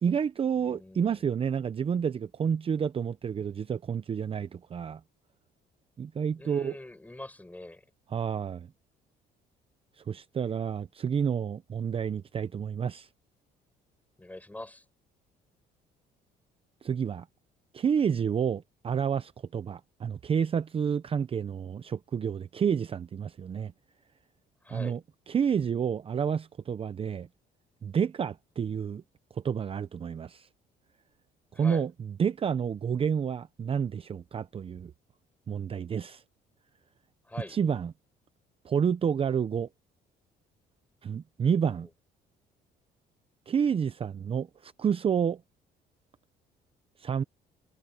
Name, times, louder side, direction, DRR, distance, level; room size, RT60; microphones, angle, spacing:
voice 1, 0.0-5.0 6.0-6.7 8.1-8.7 10.1-13.1 16.8-17.2 17.7-23.7 24.7-25.0 25.3-27.3 27.8-29.0 29.4-30.5 31.6-31.9 32.2-34.9 35.5-36.2 37.5-37.9 38.6-39.7 41.0-41.9 43.5-45.4 47.0-47.2, right 7 dB, 35° right, 0.7 m, -29 dB
voice 2, 0.6-1.3 6.4-7.9 14.2-14.9 24.6-25.0 31.5-31.9 37.2-37.6 41.6-41.9, left 1 dB, 10° left, 7.0 m, -44 dB
cardioid pair, 110°, 17 cm